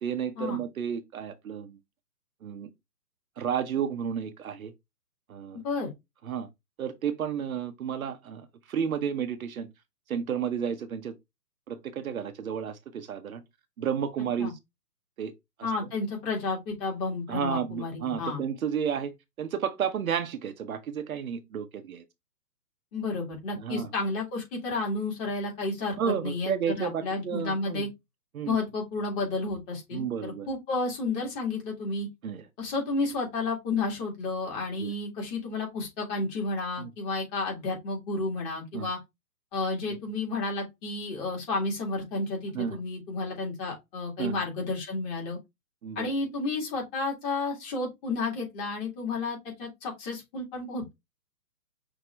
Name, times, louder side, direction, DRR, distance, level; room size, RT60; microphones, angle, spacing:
voice 1, 0.0-1.8 2.4-2.7 3.4-4.7 5.3-5.6 6.2-6.5 6.8-9.7 10.1-11.1 11.7-13.4 13.8-14.5 15.2-15.3 17.3-22.0 23.6-23.9 26.0-27.9 28.3-28.6 29.9-30.5 32.2-32.4 34.8-34.9 36.8-36.9 38.7-38.9 42.5-42.8 44.2-44.3 45.8-46.1, right 8 dB, 60° right, 0.8 m, -32 dB
voice 2, 15.6-18.4 22.9-27.9 28.4-32.1 32.6-39.0 39.5-45.4 46.0-50.9, left 3 dB, 25° left, 2.2 m, -31 dB
6.1 x 2.8 x 3.1 m
hypercardioid pair, 135°, 49 cm